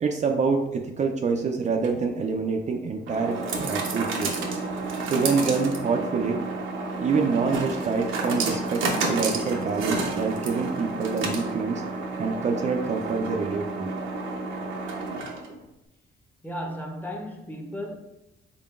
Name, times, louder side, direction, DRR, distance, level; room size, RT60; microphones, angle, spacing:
voice 1, 0.0-4.3 5.1-6.4 6.9-11.8 12.2-13.9, right 4 dB, 35° right, 0.4 m, -26 dB
sound 1, 1.7-15.6, right 3 dB, 80° right, 0.7 m, -30 dB
voice 2, 16.4-18.0, equal, 10° left, 0.7 m, -34 dB
3.8 x 3.7 x 2.4 m
cardioid pair, 90°, 20 cm